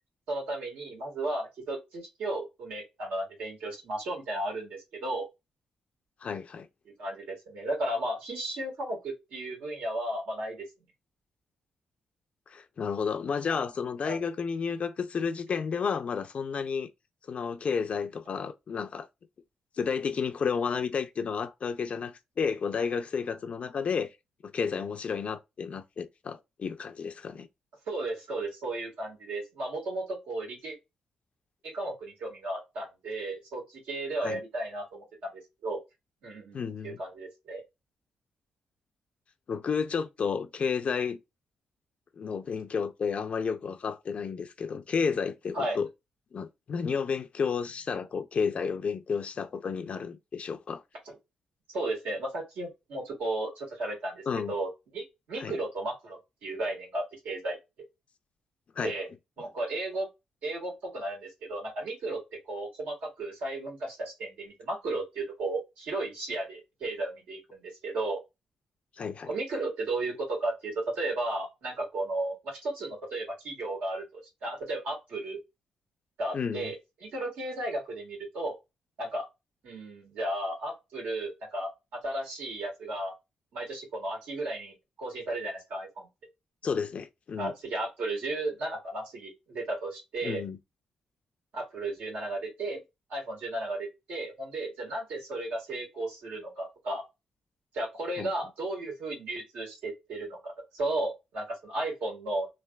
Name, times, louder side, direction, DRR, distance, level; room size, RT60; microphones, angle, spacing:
voice 1, 0.3-5.3 6.9-10.7 14.0-14.2 27.9-30.8 31.6-35.8 36.2-36.6 36.8-37.6 45.5-45.8 51.1-51.2 51.7-57.6 58.8-59.1 59.4-60.1 60.4-62.2 62.5-68.2 69.3-75.4 76.2-76.8 77.0-78.6 79.0-79.3 79.6-83.1 83.5-86.1 87.4-90.4 91.5-92.8 93.1-97.0 97.7-102.5, right 2 dB, 80° right, 1.7 m, -34 dB
voice 2, 6.2-6.7 12.5-16.9 17.3-19.1 19.8-24.1 24.4-27.5 34.2-34.4 36.5-37.0 39.5-41.2 42.2-45.9 46.3-50.8 54.3-54.5 55.4-55.6 58.8-58.9 69.0-69.3 76.3-76.7 86.6-87.5 90.2-90.6 98.2-98.3, left 6 dB, 50° left, 0.4 m, -31 dB
3.2 x 2.5 x 2.3 m
cardioid pair, 70°, 3 cm